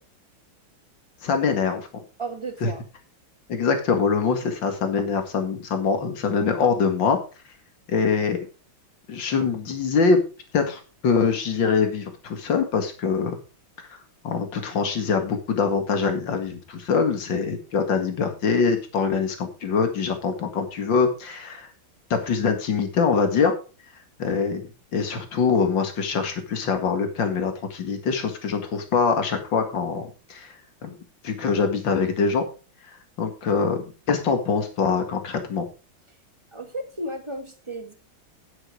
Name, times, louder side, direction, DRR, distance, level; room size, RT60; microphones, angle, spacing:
voice 1, 1.2-1.9 2.6-2.7 3.5-7.2 7.9-8.4 9.1-10.2 10.5-13.4 13.9-14.0 14.2-21.7 22.1-23.5 24.2-24.6 24.9-30.5 30.8-31.0 31.2-32.5 33.2-35.6, left 5 dB, 65° left, 6 dB, 2.6 m, -24 dB
voice 2, 2.2-2.8 36.5-37.9, right 1 dB, 20° right, 7 dB, 1.0 m, -34 dB
10.5 x 8.0 x 4.8 m, 0.34 s
omnidirectional pair, 2.2 m